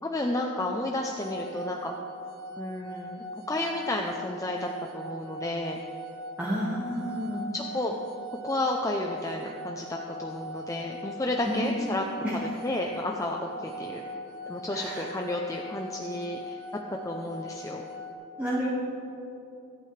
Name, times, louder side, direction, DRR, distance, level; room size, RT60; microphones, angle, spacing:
voice 1, 0.0-1.9 2.6-4.7 4.9-5.8 7.5-8.0 8.4-12.0 12.3-14.0 14.5-16.6 17.0-17.9, left 1 dB, 15° left, 1 dB, 0.6 m, -32 dB
sound 1, 1.0-18.1, equal, 75° right, 1.2 m, -41 dB
voice 2, 6.4-7.4 11.5-11.9 12.2-12.3 14.7-15.1 18.4-18.8, equal, 10° right, -7 dB, 1.7 m, -30 dB
25.5 x 8.9 x 3.3 m, 2.8 s
head